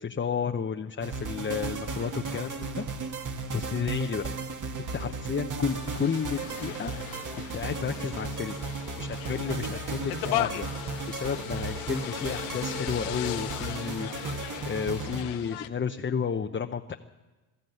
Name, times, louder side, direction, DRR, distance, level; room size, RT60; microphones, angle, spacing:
voice 1, 0.0-2.9 3.5-4.3 4.8-6.9 7.4-8.6 9.0-10.7 11.1-14.4 14.7-17.0, left 6 dB, 25° left, 5 dB, 0.9 m, -32 dB
sound 1, 1.0-15.2, right 4 dB, 40° right, 1.8 m, -35 dB
sound 2, 5.7-15.7, left 15 dB, 85° left, 1.1 m, -37 dB
22.5 x 13.0 x 9.4 m, 1.2 s
cardioid pair, 90°, 48 cm